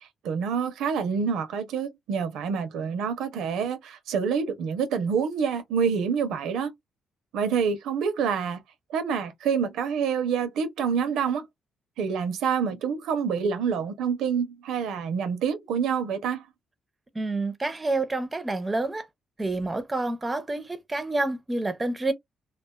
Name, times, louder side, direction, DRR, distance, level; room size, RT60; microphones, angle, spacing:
voice 1, 0.0-6.7 7.3-8.6 8.9-11.5 12.0-16.5, right 6 dB, 85° right, 0.6 m, -27 dB
voice 2, 17.1-19.1 19.4-22.1, right 2 dB, 20° right, 0.6 m, -28 dB
2.4 x 2.3 x 2.3 m
cardioid pair, 90°, 0 cm